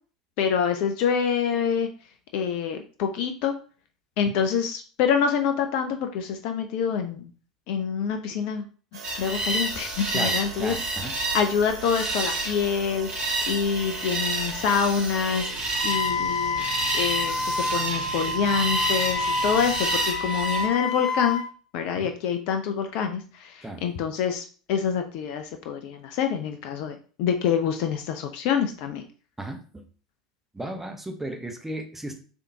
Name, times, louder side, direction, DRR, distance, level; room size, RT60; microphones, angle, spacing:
voice 1, 0.4-1.9 2.3-3.5 4.2-7.3 7.7-8.6 9.2-10.8 11.3-15.5 15.8-16.7 16.9-21.4 21.7-29.0, left 7 dB, 55° left, 6 dB, 0.4 m, -26 dB
sound 1, 8.9-19.8, right 5 dB, 70° right, 0.7 m, -41 dB
sound 2, 9.0-20.6, right 2 dB, 45° right, 1.8 m, -30 dB
voice 2, 10.1-11.1 22.0-22.1 23.6-23.8 29.4-29.8 30.5-32.2, right 1 dB, 10° right, 4 dB, 0.8 m, -35 dB
Wind instrument woodwind instrument, 15.8-21.4, left 3 dB, 40° left, 1.3 m, -28 dB
3.6 x 3.4 x 2.7 m, 0.39 s
figure-of-eight pair, 80°, 3 cm